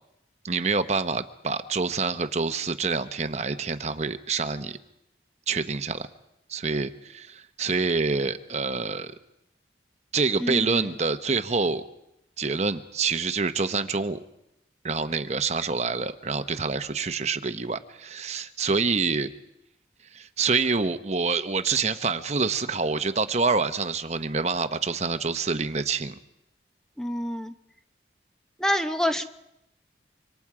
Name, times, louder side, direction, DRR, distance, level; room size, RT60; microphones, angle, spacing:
voice 1, 0.4-4.8 5.5-6.1 6.5-9.1 10.1-11.8 12.4-14.2 14.8-19.3 20.1-26.2, right 4 dB, 40° right, 10 dB, 0.9 m, -27 dB
voice 2, 10.4-10.9 27.0-27.5 28.6-29.2, equal, 5° left, 8 dB, 0.8 m, -27 dB
26.0 x 25.0 x 4.9 m, 0.85 s
head